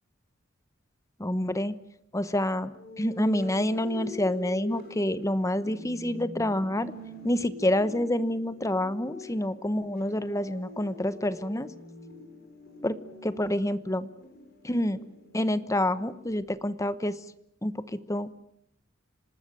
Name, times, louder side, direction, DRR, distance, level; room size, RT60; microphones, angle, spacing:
voice 1, 1.2-1.7 2.1-2.7 3.0-6.9 7.2-11.7 12.8-13.0 13.2-14.1 14.6-15.0 15.3-17.1 17.6-17.7 18.1-18.3, left 1 dB, 15° left, 14 dB, 1.0 m, -27 dB
sound 1, 2.7-16.4, left 2 dB, 50° left, 6.8 m, -44 dB
26.5 x 19.5 x 7.6 m, 0.72 s
head